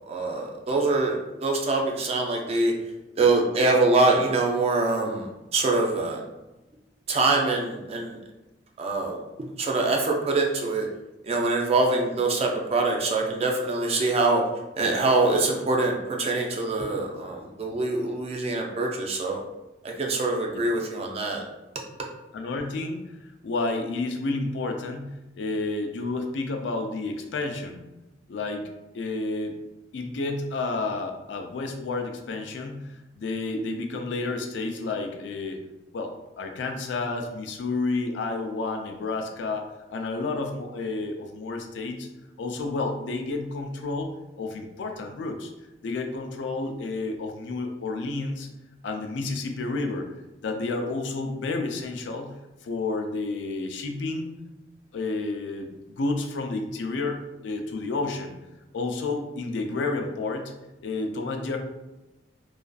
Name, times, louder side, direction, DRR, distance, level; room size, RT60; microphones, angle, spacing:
voice 1, 0.1-2.7 3.2-6.2 7.1-8.2 8.8-9.2 9.6-10.9 11.2-14.4 14.8-19.4 19.8-21.4, right 3 dB, 35° right, 1 dB, 0.4 m, -24 dB
voice 2, 22.3-27.9 28.3-29.6 29.9-35.6 35.9-42.1 42.4-44.1 44.4-45.5 45.8-48.5 48.8-50.1 50.4-52.4 52.6-54.3 54.9-58.3 58.7-60.5 60.8-61.6, left 3 dB, 75° left, 4 dB, 0.4 m, -30 dB
2.4 x 2.4 x 2.2 m, 1.0 s
head